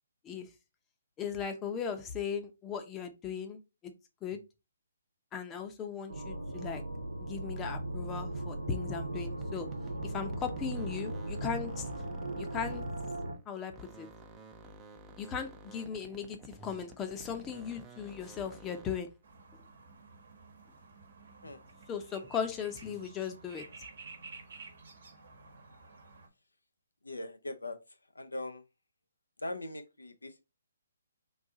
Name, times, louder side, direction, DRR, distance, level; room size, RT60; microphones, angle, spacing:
voice 1, 1.2-3.9 4.2-4.4 5.3-6.8 7.2-9.7 10.0-11.9 12.4-12.8 13.5-14.1 15.2-19.1 21.5-21.6 21.9-23.6, left 7 dB, 15° left, 0.7 m, -37 dB
sound 1, 6.1-13.3, right 2 dB, 80° right, 1.0 m, -38 dB
sound 2, 9.2-13.4 13.7-19.1, right 3 dB, 15° right, 0.6 m, -52 dB
sound 3, 19.2-26.3, right 4 dB, 60° right, 1.1 m, -52 dB
voice 2, 27.0-27.8 28.1-28.6 29.4-30.4, left 1 dB, 85° left, 0.6 m, -40 dB
4.0 x 2.7 x 3.7 m
figure-of-eight pair, 140°, 0 cm